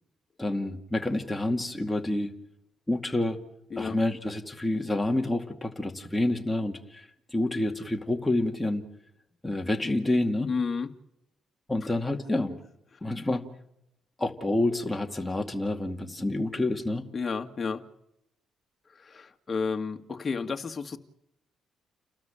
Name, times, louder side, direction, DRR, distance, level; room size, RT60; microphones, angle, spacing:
voice 1, 0.4-2.3 2.9-3.4 3.8-8.8 9.4-10.5 11.7-12.6 13.0-13.4 14.2-17.0, left 2 dB, 10° left, 3 dB, 2.3 m, -28 dB
voice 2, 10.4-10.9 17.1-17.8 18.9-21.0, left 5 dB, 35° left, 6 dB, 1.9 m, -31 dB
30.0 x 13.0 x 8.9 m, 0.82 s
cardioid pair, 90°, 0 cm